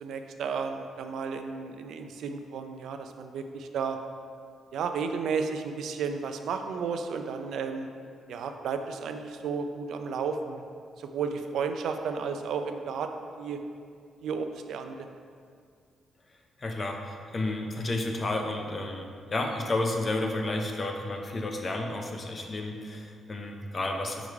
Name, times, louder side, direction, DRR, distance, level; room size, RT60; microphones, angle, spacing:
voice 1, 0.0-4.0 4.7-7.9 8.3-10.6 11.0-13.1 13.4-13.6 14.2-15.1, right 5 dB, 75° right, 6 dB, 0.5 m, -33 dB
voice 2, 16.6-24.3, left 2 dB, 30° left, 3 dB, 0.6 m, -31 dB
5.4 x 4.9 x 4.7 m, 2.2 s
cardioid pair, 145°, 0 cm